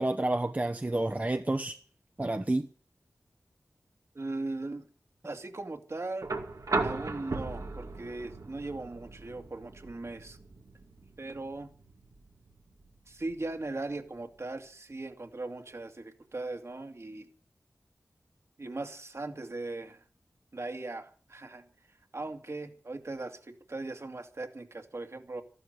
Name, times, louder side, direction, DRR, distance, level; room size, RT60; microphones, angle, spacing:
voice 1, 0.0-1.8 2.2-2.7, right 2 dB, 30° right, 6 dB, 1.0 m, -29 dB
voice 2, 4.1-4.9 5.2-6.3 6.8-10.4 11.2-11.7 13.1-17.3 18.6-20.0 20.5-21.6 22.1-25.4, right 2 dB, 55° right, 5 dB, 2.3 m, -39 dB
sound 1, 6.2-14.3 15.7-15.8, right 3 dB, 80° right, 2.3 m, -38 dB
14.5 x 12.5 x 6.8 m, 0.42 s
wide cardioid pair, 70°, 6 cm